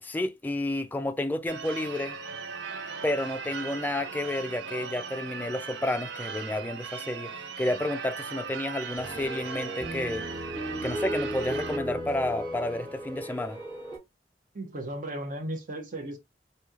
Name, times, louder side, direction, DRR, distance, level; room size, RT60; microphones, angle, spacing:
voice 1, 0.0-2.2 3.0-10.3 10.8-13.6, left 1 dB, 10° left, 0.3 m, -31 dB
Church bell / Car / Alarm, 1.5-11.8, right 5 dB, 75° right, 0.4 m, -38 dB
sound 1, 9.0-14.0, equal, 25° right, 1.3 m, -35 dB
voice 2, 14.5-16.2, right 1 dB, 50° right, 0.8 m, -35 dB
3.0 x 2.7 x 2.3 m
head